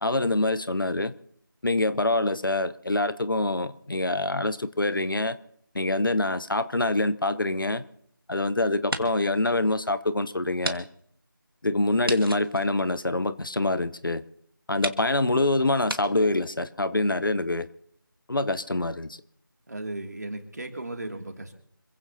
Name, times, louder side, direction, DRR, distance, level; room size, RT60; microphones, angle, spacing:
voice 1, 0.0-1.1 1.6-5.4 5.7-7.8 8.3-10.9 11.6-14.2 14.7-17.7 18.3-19.2, left 2 dB, 70° left, 1.0 m, -25 dB
sound 1, 7.4-8.4 8.7-9.4 9.8-9.9 10.6-10.8 11.1-11.2 12.0-13.6 14.3-14.4 14.8-15.0 15.9-16.0, right 1 dB, 80° right, 1.8 m, -34 dB
voice 2, 19.7-21.5, right 2 dB, 50° right, 2.6 m, -36 dB
26.5 x 16.0 x 2.8 m
figure-of-eight pair, 170°, 12 cm